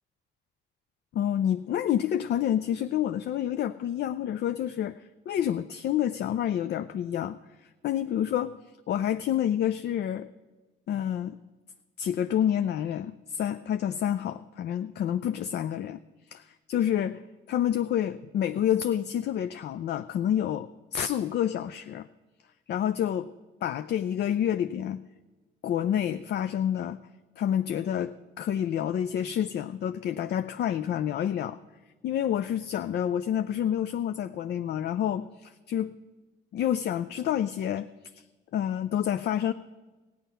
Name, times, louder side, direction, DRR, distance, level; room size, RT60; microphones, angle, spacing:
voice 1, 1.1-8.6 8.9-10.3 10.9-11.4 12.0-16.0 16.3-17.2 17.5-22.1 22.7-23.3 23.6-25.0 25.6-27.0 27.4-31.6 32.0-35.9 36.5-38.3 38.5-39.5, left 10 dB, 60° left, 11 dB, 0.4 m, -28 dB
15.5 x 9.2 x 5.6 m, 1.2 s
cardioid pair, 90°, 20 cm